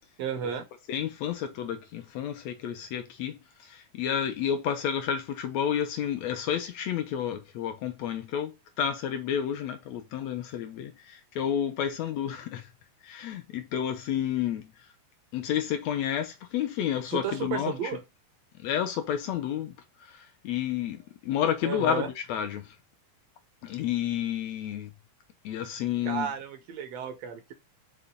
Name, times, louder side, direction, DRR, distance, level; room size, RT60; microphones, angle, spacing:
voice 1, 0.2-0.6 17.1-18.0 21.6-22.1 26.0-27.5, right 8 dB, 75° right, 1.6 m, -33 dB
voice 2, 0.9-12.7 13.0-14.9 15.3-18.0 18.6-22.8 23.6-24.9 25.4-26.3, left 9 dB, 75° left, 1.7 m, -31 dB
5.7 x 3.7 x 5.2 m
omnidirectional pair, 3.6 m